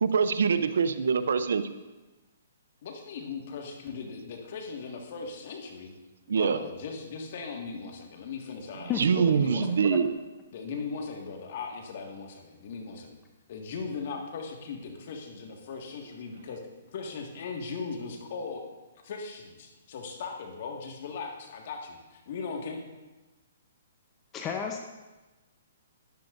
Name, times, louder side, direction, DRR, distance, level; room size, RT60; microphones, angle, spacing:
voice 1, 0.0-1.6 6.3-6.6 9.0-10.2, right 6 dB, 75° right, 12 dB, 0.6 m, -24 dB
voice 2, 2.8-6.0 6.3-9.0 9.3-9.8 10.5-13.2 13.5-18.6 19.0-22.8, left 5 dB, 55° left, 2 dB, 1.8 m, -38 dB
voice 3, 8.9-9.3 9.9-10.0 24.3-24.8, left 7 dB, 20° left, 3 dB, 0.8 m, -32 dB
12.5 x 10.5 x 2.6 m, 1.1 s
hypercardioid pair, 140°, 0 cm